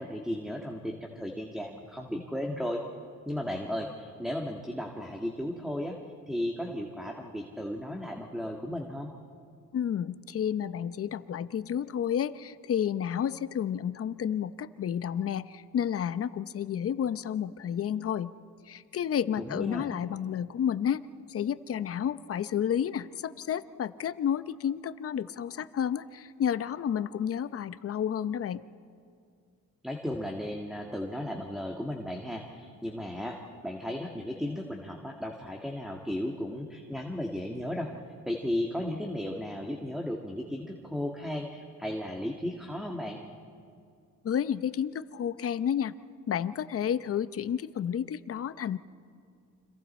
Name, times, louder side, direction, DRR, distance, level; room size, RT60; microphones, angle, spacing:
voice 1, 0.0-2.8 3.3-6.0 6.3-9.1 19.4-19.9 29.8-37.9 38.3-43.2, left 1 dB, ahead, 2 dB, 1.8 m, -35 dB
voice 2, 9.7-18.3 18.7-21.0 21.3-28.6 44.2-45.9 46.3-48.8, left 9 dB, 50° left, 14 dB, 0.8 m, -31 dB
29.5 x 25.5 x 4.4 m, 2.3 s
cardioid pair, 90°, 30 cm